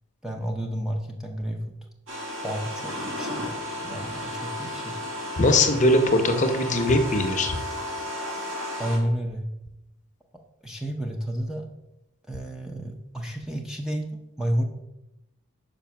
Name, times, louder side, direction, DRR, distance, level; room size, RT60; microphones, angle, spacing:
voice 1, 0.2-1.6 2.4-4.9 8.8-9.5 10.6-11.7 12.3-14.6, equal, 5° right, 1 dB, 0.5 m, -31 dB
sound 1, 2.1-9.0, left 1 dB, 60° right, 1.8 m, -33 dB
voice 2, 5.4-7.6, left 1 dB, 35° left, 6 dB, 0.7 m, -21 dB
5.2 x 5.2 x 5.8 m, 0.91 s
head